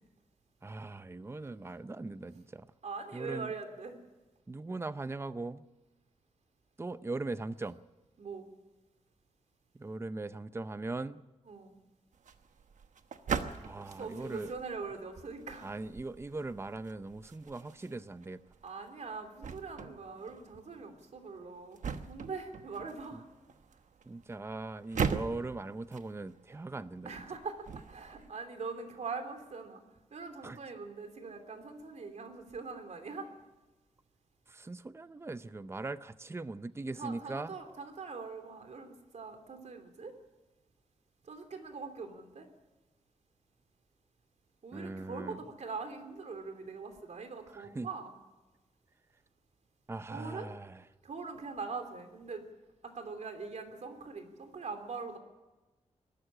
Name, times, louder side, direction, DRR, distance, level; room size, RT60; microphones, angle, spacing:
voice 1, 0.6-2.7 3.1-3.5 4.5-5.6 6.8-7.8 9.7-11.2 13.6-14.5 15.6-18.4 24.1-27.1 30.4-30.6 34.5-37.5 44.7-45.4 47.5-47.9 49.9-50.8, right 3 dB, 20° right, 14 dB, 0.6 m, -40 dB
voice 2, 2.8-4.0 8.2-8.5 11.4-11.8 13.8-15.7 18.6-23.2 27.0-29.8 30.1-33.3 37.0-40.1 41.2-42.5 44.6-48.2 50.1-50.5 51.0-52.4 52.8-55.2, right 4 dB, 70° right, 6 dB, 3.1 m, -42 dB
sound 1, 12.1-28.3, right 6 dB, 85° right, 1.1 m, -41 dB
22.0 x 13.0 x 10.0 m, 1.2 s
wide cardioid pair, 105°, 12 cm